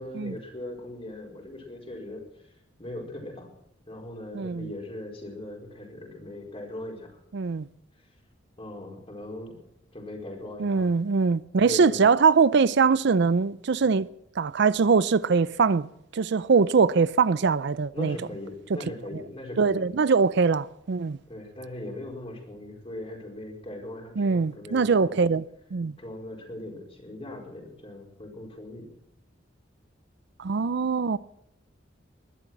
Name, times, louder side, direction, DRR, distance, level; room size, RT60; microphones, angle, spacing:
voice 1, 0.0-2.5 2.8-3.5 3.9-7.1 8.6-9.6 9.9-10.9 11.5-12.0 17.9-19.9 21.3-25.2 26.0-28.9, left 1 dB, 30° left, 4.7 m, -39 dB
voice 2, 4.3-4.7 7.3-7.7 10.6-14.1 14.4-15.9 16.1-18.2 19.6-21.2 24.2-25.4 25.7-25.9 30.4-31.2, right 5 dB, 60° right, 0.5 m, -22 dB
20.5 x 12.0 x 6.0 m
head